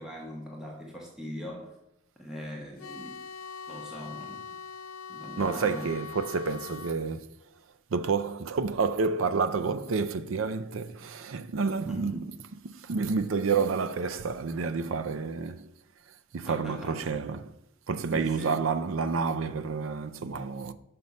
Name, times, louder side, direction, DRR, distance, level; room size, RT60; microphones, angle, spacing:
voice 1, 0.0-1.8 2.2-3.2 3.7-4.6 5.1-5.9 11.9-12.3 13.6-13.7 16.4-17.1 18.1-19.3, equal, 5° right, 1.0 m, -41 dB
sound 1, 2.8-7.0, left 6 dB, 90° left, 0.5 m, -42 dB
voice 2, 5.4-7.3 7.9-12.3 12.6-15.7 16.3-17.5 17.9-20.7, right 4 dB, 75° right, 0.5 m, -29 dB
5.9 x 5.3 x 5.3 m
head